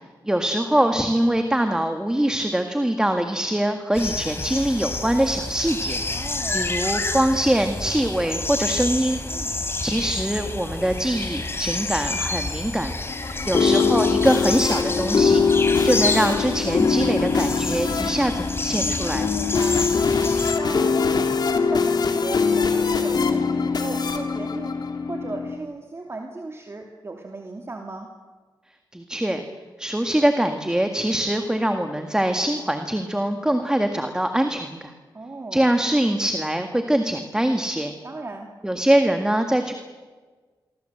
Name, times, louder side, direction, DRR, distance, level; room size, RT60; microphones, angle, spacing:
voice 1, 0.2-6.0 6.5-9.2 9.8-12.9 13.5-15.4 15.8-19.3 28.9-29.4 29.8-34.9 35.5-37.9 38.6-39.7, right 1 dB, 10° right, 6 dB, 1.9 m, -23 dB
sound 1, 3.9-20.6, left 3 dB, 30° left, 3.0 m, -29 dB
voice 2, 6.1-6.8 9.3-9.5 19.3-19.8 20.5-24.8 25.1-28.1 35.1-35.8 38.0-38.5, right 3 dB, 30° right, 2 dB, 2.6 m, -36 dB
sound 2, 13.1-25.6, left 5 dB, 60° left, 3.1 m, -22 dB
28.0 x 23.5 x 8.0 m, 1.4 s
wide cardioid pair, 110°, 8 cm